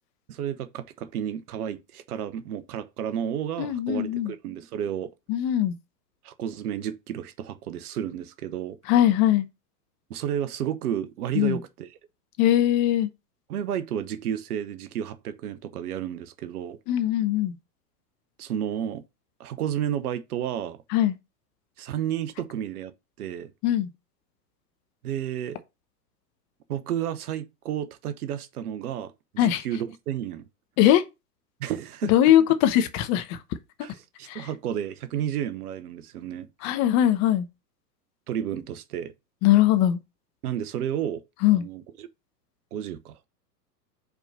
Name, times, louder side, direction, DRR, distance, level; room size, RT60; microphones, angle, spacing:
voice 1, 0.3-5.1 6.2-8.8 10.1-12.0 13.5-16.8 18.4-19.0 19.4-20.8 21.8-23.5 25.0-25.6 26.7-30.5 31.6-32.3 33.8-36.5 38.3-39.1 40.4-41.2 41.5-42.1 42.7-43.2, right 10 dB, 60° right, 1.0 m, -32 dB
voice 2, 3.6-4.3 5.3-5.7 8.9-9.4 11.3-11.6 12.4-13.1 16.9-17.5 20.9-21.1 23.6-23.9 29.4-29.6 30.8-31.0 32.1-33.4 34.3-34.4 36.6-37.5 39.4-40.0 41.4-41.6, left 12 dB, 35° left, 0.9 m, -21 dB
5.3 x 4.7 x 5.4 m
hypercardioid pair, 110°, 49 cm